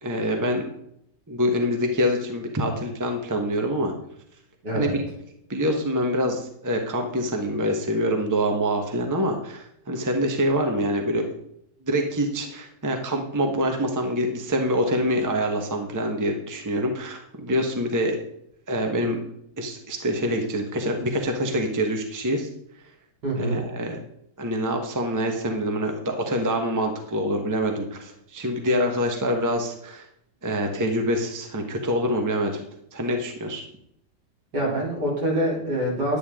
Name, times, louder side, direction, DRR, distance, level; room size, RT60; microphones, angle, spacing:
voice 1, 0.0-0.7 1.3-3.9 4.7-4.9 5.5-11.2 11.8-18.2 18.7-19.3 19.6-22.5 23.4-24.0 24.4-30.1 30.4-32.6 32.9-33.7, equal, 10° right, 3 dB, 1.1 m, -25 dB
voice 2, 4.6-5.0 23.2-23.6 34.5-36.2, right 1 dB, 75° right, -4 dB, 4.5 m, -25 dB
10.5 x 9.9 x 3.7 m, 0.73 s
omnidirectional pair, 1.8 m